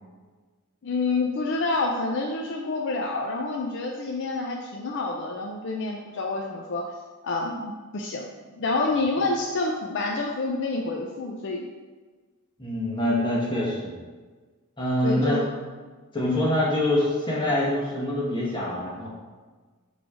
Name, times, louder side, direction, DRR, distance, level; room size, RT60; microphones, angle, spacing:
voice 1, 0.8-6.9 7.2-8.3 8.6-11.7 15.0-15.4 16.3-16.5, left 3 dB, 55° left, 1 dB, 0.5 m, -28 dB
voice 2, 12.6-13.9 14.8-15.4 16.1-19.1, left 1 dB, 20° left, -5 dB, 1.5 m, -25 dB
6.0 x 3.3 x 4.9 m, 1.4 s
head